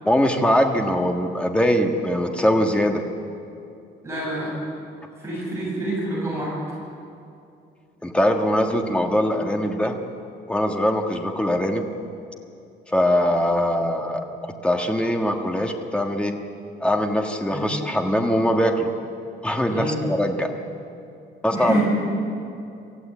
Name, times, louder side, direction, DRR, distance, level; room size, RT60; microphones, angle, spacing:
voice 1, 0.0-3.0 8.0-10.0 10.5-11.9 12.9-14.2 14.6-16.3 16.8-18.9 19.4-20.5 21.4-21.8, equal, 5° left, 2 dB, 1.5 m, -22 dB
voice 2, 4.0-4.5 5.2-6.5 17.5-17.6 19.7-20.0 21.5-21.8, right 1 dB, 15° right, -6 dB, 7.3 m, -26 dB
27.5 x 14.5 x 8.4 m, 2.6 s
cardioid pair, 180°, 18 cm